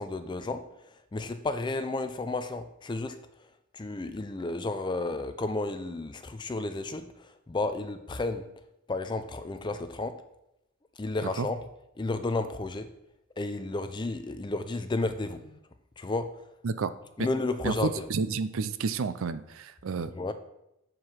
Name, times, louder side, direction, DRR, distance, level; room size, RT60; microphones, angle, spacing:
voice 1, 0.0-3.5 3.7-8.5 8.9-10.2 11.0-11.6 12.0-12.9 13.4-15.6 16.0-16.4 17.2-18.1 20.1-20.3, left 2 dB, 20° left, 9 dB, 0.4 m, -32 dB
voice 2, 17.6-20.3, right 4 dB, 65° right, 12 dB, 0.4 m, -30 dB
7.5 x 4.6 x 6.3 m, 0.85 s
head